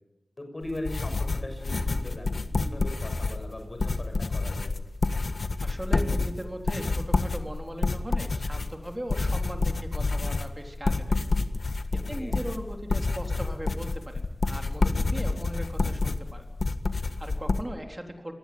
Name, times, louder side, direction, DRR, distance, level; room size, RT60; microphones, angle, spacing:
voice 1, 0.4-2.3 2.6-4.7 12.0-12.4, left 1 dB, 35° left, 5 dB, 6.8 m, -39 dB
sound 1, 0.6-17.6, left 3 dB, 70° left, 1.6 m, -28 dB
voice 2, 5.6-11.2 11.9-16.5 17.0-18.3, equal, 20° right, 3 dB, 3.8 m, -38 dB
26.0 x 19.5 x 9.7 m, 0.97 s
wide cardioid pair, 75°, 0 cm